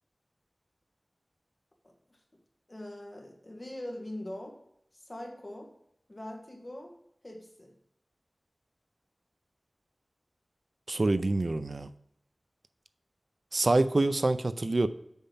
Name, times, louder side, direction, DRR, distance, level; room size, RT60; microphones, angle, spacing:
voice 1, 2.7-4.6 4.9-5.7 6.1-7.0 7.2-7.7, left 1 dB, 35° left, 1 dB, 1.9 m, -42 dB
voice 2, 10.9-11.9 13.5-14.9, right 2 dB, 60° right, 12 dB, 0.4 m, -26 dB
7.1 x 5.4 x 5.6 m, 0.78 s
wide cardioid pair, 65°, 0 cm